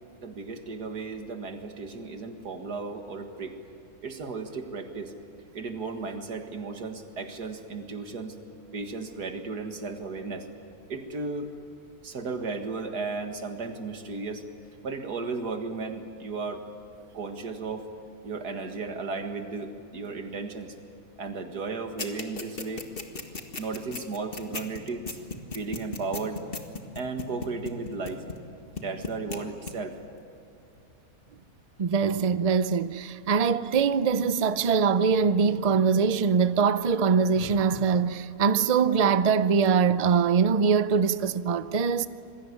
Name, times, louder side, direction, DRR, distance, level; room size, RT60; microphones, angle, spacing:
voice 1, 0.2-3.6 4.0-5.1 5.5-8.4 8.7-10.5 10.9-11.5 12.0-14.4 14.8-16.6 17.1-17.9 18.2-20.7 21.2-22.9 23.6-25.2 25.5-26.4 27.0-28.3 28.8-30.0, right 4 dB, 90° right, 2.4 m, -35 dB
sound 1, 22.0-28.5 28.8-29.4 29.7-29.8, left 4 dB, 35° left, 2.0 m, -35 dB
voice 2, 31.8-42.1, right 6 dB, 45° right, 0.5 m, -23 dB
27.0 x 21.5 x 9.8 m
omnidirectional pair, 1.7 m